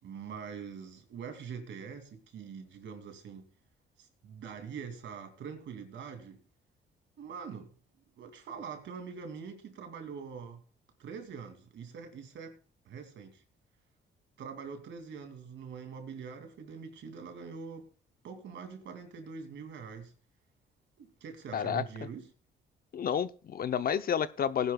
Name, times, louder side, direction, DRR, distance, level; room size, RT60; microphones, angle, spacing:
voice 1, 0.0-3.5 4.0-6.4 7.2-7.7 8.2-10.6 11.0-12.6 12.8-13.4 14.4-17.9 18.2-20.1 21.0-22.3, right 6 dB, 70° right, 2.6 m, -44 dB
voice 2, 21.5-21.8 22.9-24.7, left 8 dB, 50° left, 0.7 m, -30 dB
18.5 x 11.0 x 2.3 m
cardioid pair, 90°, 20 cm